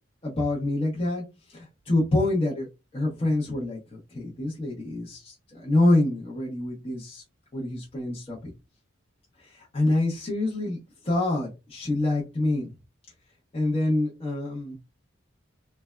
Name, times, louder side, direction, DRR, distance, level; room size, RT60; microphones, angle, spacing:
voice 1, 0.2-1.2 1.5-7.2 7.5-8.5 9.4-10.8 11.0-12.7 13.5-14.8, left 2 dB, 30° left, -5 dB, 0.7 m, -26 dB
3.3 x 2.2 x 2.2 m, 0.25 s
head